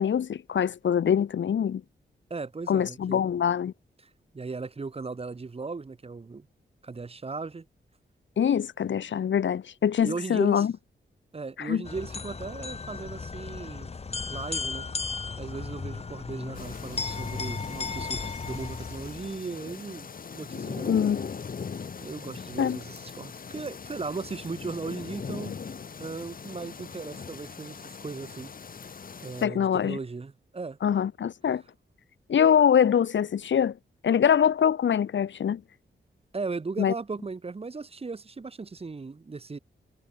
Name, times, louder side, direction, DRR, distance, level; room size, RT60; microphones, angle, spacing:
voice 1, 0.0-1.8 2.7-3.7 8.4-10.7 11.6-11.8 20.9-21.2 22.6-22.8 29.4-30.0 30.8-31.6 32.3-33.8 34.0-35.6 36.8-36.9, left 8 dB, 80° left, 1.8 m, -24 dB
voice 2, 2.3-3.2 4.3-6.5 6.8-7.6 10.0-10.7 11.3-13.9 14.2-14.8 15.4-21.0 22.0-28.6 29.2-30.8 36.3-39.6, right 4 dB, 30° right, 3.2 m, -37 dB
sound 1, 11.8-19.4, left 4 dB, 35° left, 1.6 m, -35 dB
sound 2, 16.5-29.4, left 6 dB, 50° left, 2.2 m, -40 dB
wide cardioid pair, 150°, 19 cm